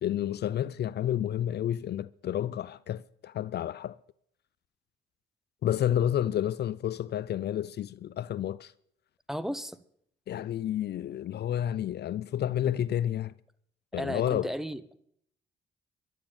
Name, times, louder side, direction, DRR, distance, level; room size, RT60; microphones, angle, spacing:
voice 1, 0.0-4.0 5.6-8.7 10.3-13.3 13.9-14.5, left 11 dB, 55° left, 0.5 m, -30 dB
voice 2, 9.3-9.8 13.9-14.8, equal, ahead, 1.1 m, -34 dB
12.0 x 10.0 x 8.7 m
cardioid pair, 90°, 20 cm